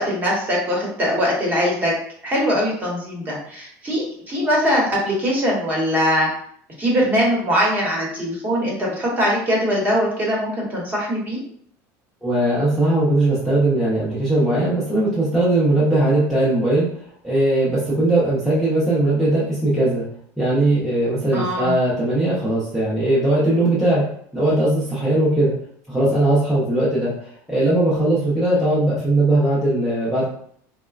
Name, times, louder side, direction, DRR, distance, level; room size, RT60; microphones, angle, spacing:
voice 1, 0.0-1.9 2.2-6.3 6.8-11.4 21.3-21.8, equal, 20° right, -3 dB, 0.9 m, -21 dB
voice 2, 12.2-16.9 17.2-20.0 20.4-24.0 24.3-25.5 25.9-30.2, right 1 dB, 5° left, -9 dB, 0.6 m, -19 dB
3.9 x 2.1 x 2.4 m, 0.64 s
cardioid pair, 165°, 8 cm